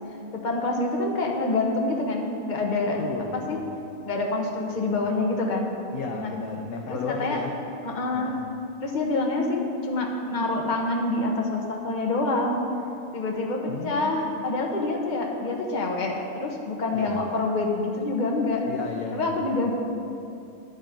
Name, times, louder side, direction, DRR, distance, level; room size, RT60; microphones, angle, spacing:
voice 1, 0.3-3.0 3.3-3.6 4.0-5.7 6.2-6.3 6.9-7.4 7.8-8.3 8.8-12.6 13.1-18.6 19.1-19.7, left 2 dB, 35° left, 0 dB, 1.2 m, -26 dB
voice 2, 3.0-3.7 5.0-5.1 5.9-7.6 8.1-8.5 13.7-14.4 16.9-17.2 18.7-19.4, left 4 dB, 80° left, 1 dB, 1.2 m, -34 dB
10.5 x 8.1 x 5.1 m, 2.6 s
omnidirectional pair, 1.5 m